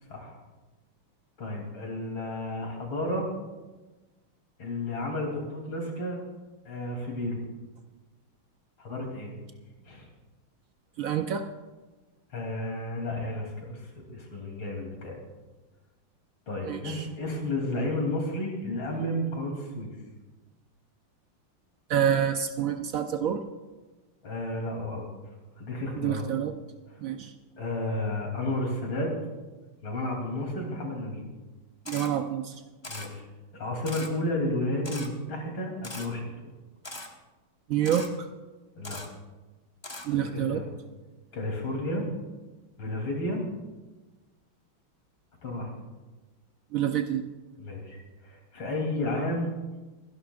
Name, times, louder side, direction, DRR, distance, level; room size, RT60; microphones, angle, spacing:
voice 1, 1.4-3.3 4.6-6.2 6.7-7.4 8.8-9.3 9.9-10.1 12.3-15.2 16.5-19.9 24.2-25.1 25.6-26.3 27.6-29.1 29.8-31.3 32.9-33.3 33.5-36.5 38.8-39.0 40.1-40.7 41.3-42.1 42.8-43.4 45.4-45.7 47.6-48.0 48.2-49.5, left 1 dB, 70° left, 0 dB, 3.7 m, -32 dB
voice 2, 11.0-11.4 16.6-17.1 21.9-23.4 26.0-26.6 27.0-27.3 31.9-32.5 37.7-38.1 40.0-40.6 46.7-47.2, right 9 dB, 85° right, 6 dB, 0.7 m, -27 dB
Camera, 31.8-32.1 32.8-33.1 33.8-34.1 34.8-35.1 35.8-36.1 36.8-37.1 37.8-38.1 38.8-39.1 39.8-40.1, left 2 dB, 20° left, 0.6 m, -39 dB
28.5 x 11.0 x 2.4 m, 1.2 s
omnidirectional pair, 2.3 m